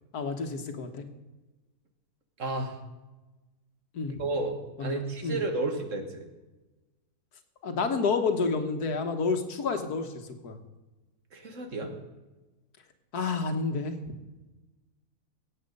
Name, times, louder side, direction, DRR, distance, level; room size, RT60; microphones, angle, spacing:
voice 1, 0.1-1.1 3.9-4.1 4.8-5.4 7.6-10.6 13.1-14.0, left 4 dB, 80° left, 7 dB, 1.8 m, -29 dB
voice 2, 2.4-2.8 4.2-6.3 11.3-11.9, right 2 dB, 55° right, 6 dB, 1.8 m, -32 dB
17.5 x 8.1 x 5.4 m, 1.1 s
omnidirectional pair, 1.6 m